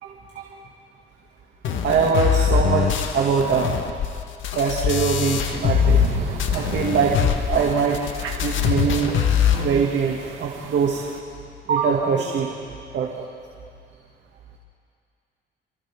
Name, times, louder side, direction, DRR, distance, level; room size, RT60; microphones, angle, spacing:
voice 1, 0.0-0.5 1.8-3.8 4.6-6.0 6.5-7.2 7.5-8.0 8.4-11.0 11.7-12.6 12.9-13.3, right 6 dB, 65° right, -2 dB, 2.5 m, -23 dB
sound 1, 1.6-6.1 6.4-9.6, left 8 dB, 75° left, 1.7 m, -22 dB
sound 2, 5.2-11.2, right 6 dB, 80° right, 2.1 m, -33 dB
29.0 x 25.5 x 3.8 m, 2.4 s
cardioid pair, 90°, 20 cm